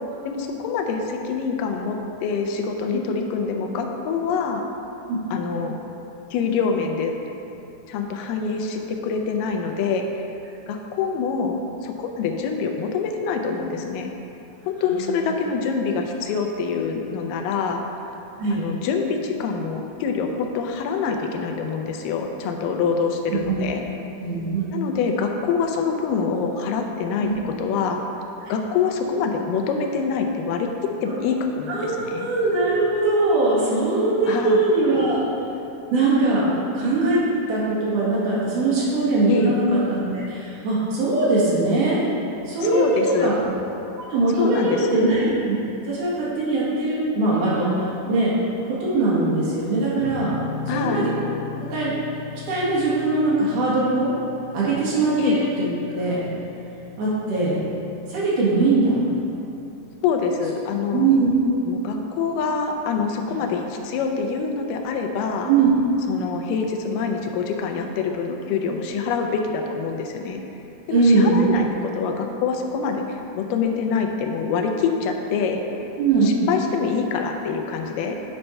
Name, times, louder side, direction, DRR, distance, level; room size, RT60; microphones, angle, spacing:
voice 1, 0.3-4.6 5.3-5.8 6.3-7.2 7.9-10.1 10.7-14.1 14.7-17.8 18.5-23.8 24.7-28.0 28.5-30.7 31.0-32.3 34.3-34.6 39.3-39.6 42.7-43.4 44.4-45.1 50.7-51.1 55.2-55.4 60.0-61.1 61.7-65.5 66.1-70.4 70.9-75.6 76.1-78.2, left 5 dB, 85° left, 4 dB, 2.3 m, -25 dB
voice 2, 14.9-15.3 18.4-18.6 23.3-23.4 24.2-24.8 27.2-27.3 31.7-35.2 35.9-36.4 36.7-37.2 37.5-40.0 40.3-42.0 42.4-43.4 44.1-45.5 45.9-48.3 48.6-50.4 50.7-51.1 51.7-51.9 52.5-54.1 54.5-56.2 57.0-57.6 58.1-59.0 60.9-61.3 65.4-65.7 70.9-71.4 76.0-76.3, right 3 dB, 70° right, -8 dB, 3.3 m, -21 dB
sound 1, 50.0-57.6, left 8 dB, 45° right, 1.3 m, -37 dB
9.0 x 4.4 x 5.4 m, 2.8 s
omnidirectional pair, 3.8 m